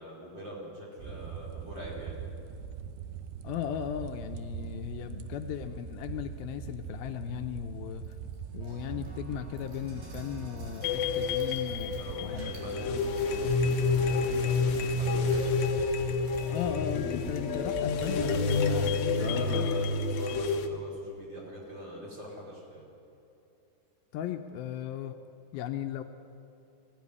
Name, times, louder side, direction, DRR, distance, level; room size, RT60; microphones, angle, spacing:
voice 1, 0.0-2.2 12.0-15.6 19.1-22.9, equal, 30° right, -4 dB, 5.3 m, -43 dB
sound 1, 1.0-18.7, right 7 dB, 90° right, 2.8 m, -42 dB
voice 2, 3.4-8.0 8.5-11.9 12.2-12.5 12.8-13.2 16.5-19.7 24.1-25.2 25.5-26.0, left 9 dB, 80° left, 7 dB, 2.6 m, -36 dB
sound 2, 8.0-18.9, right 1 dB, 60° right, 5.6 m, -49 dB
sound 3, 10.8-20.7, left 4 dB, 60° left, 2.0 m, -29 dB
20.5 x 15.5 x 9.7 m, 2.8 s
omnidirectional pair, 4.5 m